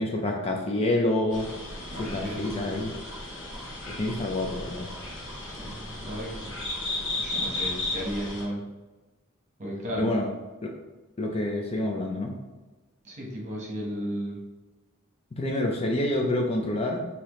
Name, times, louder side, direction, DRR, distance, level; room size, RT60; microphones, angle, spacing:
voice 1, 0.0-2.9 4.0-4.9 9.9-10.3 10.6-10.7 11.2-12.3 15.4-17.1, left 1 dB, 30° left, 2 dB, 0.4 m, -28 dB
sound 1, 1.3-8.4, left 2 dB, 60° left, 1.1 m, -35 dB
voice 2, 1.9-2.7 5.1-6.5 7.2-8.6 9.6-10.2 13.0-14.4, equal, 35° right, -3 dB, 1.2 m, -35 dB
5.8 x 2.8 x 3.1 m, 1.2 s
head